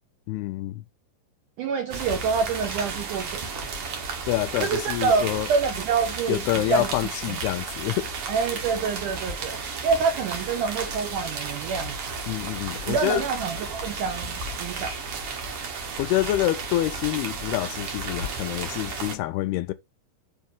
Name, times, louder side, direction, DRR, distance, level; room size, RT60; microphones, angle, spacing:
voice 1, 0.3-0.8 4.3-5.5 6.3-8.1 12.3-13.2 16.0-19.7, left 15 dB, 80° left, 2.5 m, -27 dB
voice 2, 1.6-3.7 4.6-6.9 7.3-7.4 8.3-12.2 12.9-14.9, right 5 dB, 90° right, 1.7 m, -27 dB
sound 1, 1.9-19.2, right 4 dB, 60° right, 1.6 m, -33 dB
7.3 x 3.0 x 5.3 m
omnidirectional pair, 4.8 m